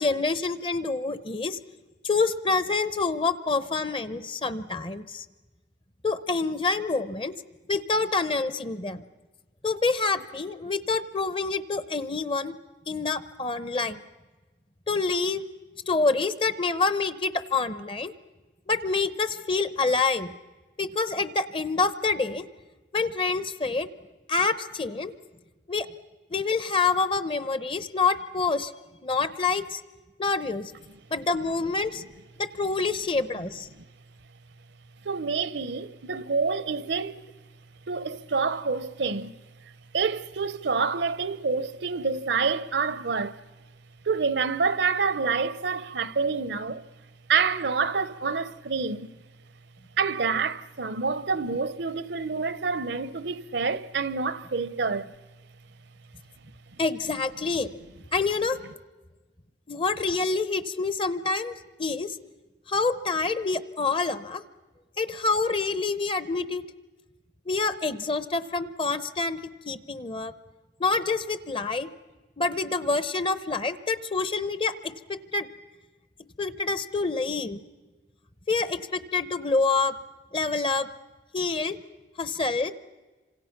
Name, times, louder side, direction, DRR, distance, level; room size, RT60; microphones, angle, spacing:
voice 1, 0.0-1.6 2.0-5.2 6.0-7.3 7.7-9.0 9.6-12.6 12.9-14.0 14.9-15.4 15.9-18.1 18.7-20.3 20.8-22.5 22.9-23.9 24.3-25.1 25.7-25.9 26.3-28.7 29.0-29.8 30.2-30.7 31.1-32.0 32.4-33.7 56.8-57.7 58.1-58.6 59.7-61.5 61.8-62.2 62.7-64.4 65.0-66.6 67.5-70.3 70.8-71.9 72.4-75.5 76.4-77.6 78.5-79.9 80.3-80.9 81.3-81.8 82.2-82.7, left 4 dB, 30° left, 0.8 m, -27 dB
voice 2, 35.0-37.2 37.9-39.3 39.9-43.4 44.0-46.8 47.3-49.1 50.0-55.1, right 5 dB, 65° right, 0.7 m, -27 dB
28.0 x 26.0 x 5.9 m
head